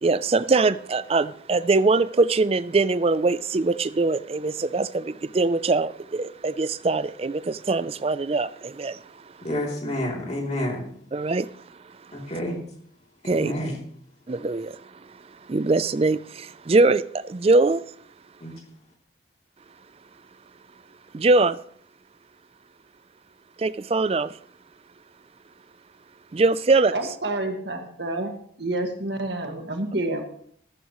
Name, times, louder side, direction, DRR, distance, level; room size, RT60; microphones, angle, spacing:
voice 1, 0.0-9.1 11.1-11.5 13.3-13.5 14.3-14.8 15.5-17.8 21.1-21.6 23.6-24.3 26.3-26.9, right 3 dB, 30° right, 0.4 m, -22 dB
voice 2, 9.4-10.9 12.1-12.6 13.2-13.8 18.4-18.5, left 1 dB, 35° left, 3.1 m, -29 dB
voice 3, 26.9-28.3 28.6-30.3, right 2 dB, 60° right, 1.8 m, -28 dB
13.5 x 13.5 x 3.1 m
head